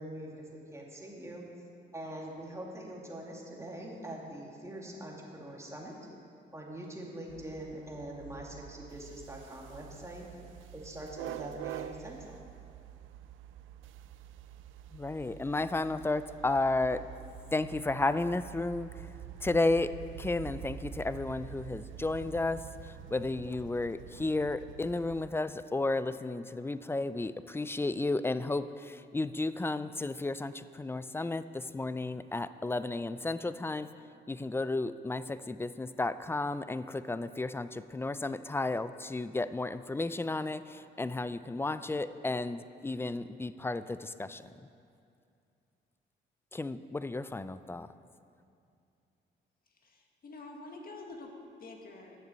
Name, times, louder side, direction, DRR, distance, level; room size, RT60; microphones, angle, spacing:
voice 1, 0.0-1.4 1.9-5.9 6.5-10.3 10.7-12.4, right 1 dB, 15° right, -2 dB, 2.3 m, -43 dB
sound 1, 7.3-25.3, right 10 dB, 80° right, 0.5 m, -47 dB
voice 2, 14.9-17.0 17.5-19.1 19.4-33.9 34.3-44.5 46.5-47.9, left 2 dB, 10° left, 14 dB, 0.3 m, -33 dB
voice 3, 49.8-51.3 51.6-52.2, left 3 dB, 50° left, 2 dB, 1.7 m, -47 dB
10.0 x 6.6 x 8.3 m, 2.5 s
cardioid pair, 90°, 20 cm